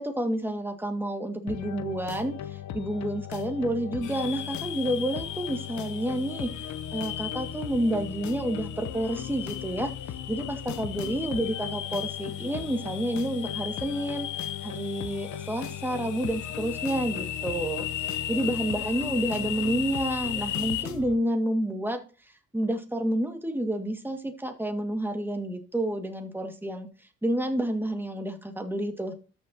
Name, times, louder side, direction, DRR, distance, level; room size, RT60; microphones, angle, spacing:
voice 1, 0.0-26.9 27.2-29.1, right 1 dB, 5° right, 5 dB, 2.0 m, -30 dB
sound 1, 1.5-21.2, left 9 dB, 65° left, 0.9 m, -38 dB
sound 2, 4.0-20.8, left 11 dB, 85° left, 1.2 m, -37 dB
13.5 x 6.6 x 2.9 m, 0.35 s
cardioid pair, 90°, 30 cm